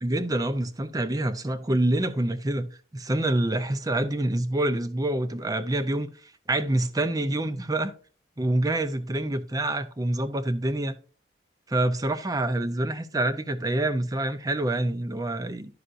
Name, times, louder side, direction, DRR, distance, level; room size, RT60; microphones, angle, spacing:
voice 1, 0.0-2.7 2.9-7.9 8.4-11.0 11.7-15.7, right 1 dB, 20° right, 0.5 m, -26 dB
11.0 x 5.8 x 2.5 m
head